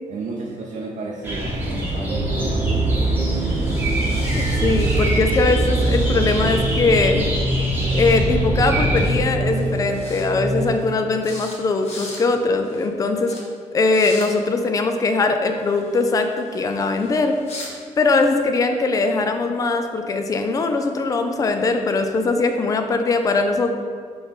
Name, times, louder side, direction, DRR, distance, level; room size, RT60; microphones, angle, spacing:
voice 1, 0.1-3.1, right 3 dB, 65° right, -2 dB, 0.6 m, -33 dB
sound 1, 1.2-9.1, equal, 15° right, 1.1 m, -24 dB
sound 2, 2.1-10.6, right 2 dB, 35° right, 0.8 m, -24 dB
sound 3, 2.4-5.5 5.7-7.2 8.6-8.7 9.0-9.2 9.5-10.2 10.6-10.9 11.2-11.6 11.8-12.2 12.6-12.9 13.2-13.4 13.8-14.3 15.5-17.7, left 2 dB, 50° left, 1.3 m, -41 dB
voice 2, 4.2-7.3 7.9-13.4 13.7-17.4 18.0-23.7, left 3 dB, 25° left, 6 dB, 0.4 m, -21 dB
6.1 x 3.1 x 5.2 m, 2.1 s
cardioid pair, 150°, 14 cm